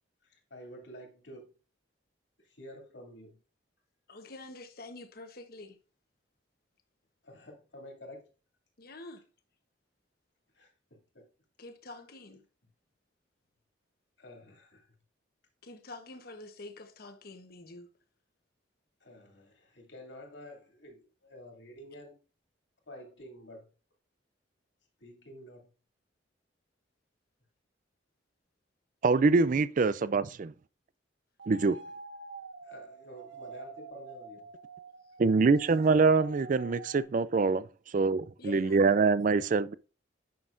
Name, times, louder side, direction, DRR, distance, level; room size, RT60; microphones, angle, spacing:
voice 1, 0.2-1.5 2.4-3.4 7.2-8.3 10.5-11.3 14.2-14.9 19.0-22.2 22.9-23.7 25.0-25.7 32.6-34.5 36.2-36.3 38.1-38.2, equal, 70° left, 2.8 m, -50 dB
voice 2, 4.1-5.8 8.8-9.2 11.6-12.4 15.6-17.9 38.4-38.8, left 2 dB, 55° left, 1.1 m, -47 dB
voice 3, 29.0-30.5 31.5-31.8 35.2-37.7 37.9-39.7, right 4 dB, 45° right, 0.4 m, -24 dB
sound 1, 31.4-37.0, right 3 dB, 85° right, 1.5 m, -47 dB
9.5 x 6.2 x 2.6 m
head